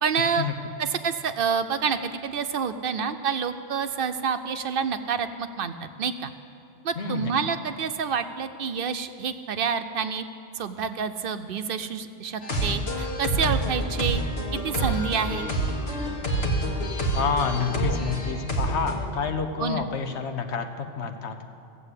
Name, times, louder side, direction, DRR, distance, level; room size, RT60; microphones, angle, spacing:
voice 1, 0.0-0.4 0.8-6.3 6.8-10.2 10.5-14.2 14.5-15.5 19.6-19.9, right 6 dB, 60° right, 9 dB, 0.7 m, -28 dB
voice 2, 7.0-7.3 12.7-12.9 15.3-15.4 17.1-21.4, left 5 dB, 85° left, 6 dB, 1.2 m, -29 dB
sound 1, 12.4-19.1, right 1 dB, 70° left, 1.6 m, -27 dB
15.0 x 7.7 x 8.2 m, 2.5 s
omnidirectional pair, 1.1 m